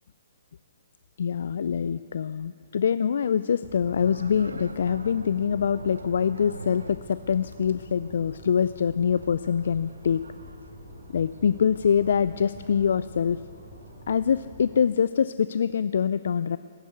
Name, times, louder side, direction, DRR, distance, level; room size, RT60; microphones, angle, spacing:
voice 1, 1.2-10.2 11.1-13.4 14.1-16.6, left 7 dB, 65° left, 15 dB, 0.3 m, -24 dB
sound 1, 3.6-14.8, left 1 dB, 25° left, 3.3 m, -47 dB
sound 2, 3.9-14.2, right 2 dB, 85° right, 0.7 m, -45 dB
17.5 x 10.0 x 8.2 m, 2.3 s
figure-of-eight pair, 125°, 0 cm